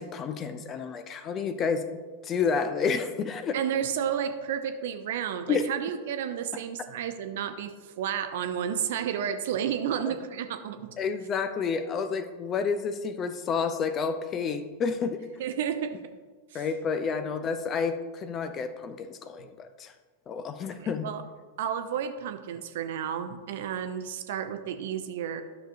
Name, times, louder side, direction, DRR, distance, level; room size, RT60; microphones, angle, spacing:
voice 1, 0.0-1.8 2.2-3.6 5.5-5.6 11.0-15.2 16.5-19.9 20.3-21.1, left 5 dB, 30° left, 10 dB, 0.6 m, -30 dB
voice 2, 3.5-10.9 15.4-16.0 16.5-16.7 20.7-21.2 21.6-25.4, right 8 dB, 55° right, 8 dB, 0.7 m, -31 dB
12.5 x 6.3 x 2.7 m, 1.4 s
figure-of-eight pair, 90°, 0 cm